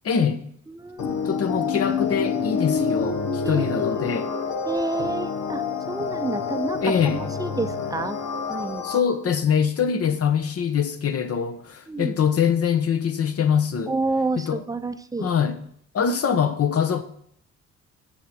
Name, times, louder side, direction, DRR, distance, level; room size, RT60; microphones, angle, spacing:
voice 1, 0.0-0.4 1.2-4.3 6.8-7.2 8.8-13.9 14.4-14.6 15.2-15.5 15.9-17.0, left 7 dB, 50° left, 1.0 m, -23 dB
voice 2, 0.7-1.2 3.4-4.0 4.7-8.2 8.5-8.9 11.9-12.2 13.9-15.3, right 3 dB, 10° right, 0.6 m, -29 dB
sound 1, 1.0-9.0, left 5 dB, 80° left, 1.2 m, -27 dB
7.2 x 6.4 x 6.0 m
cardioid pair, 90°, 30 cm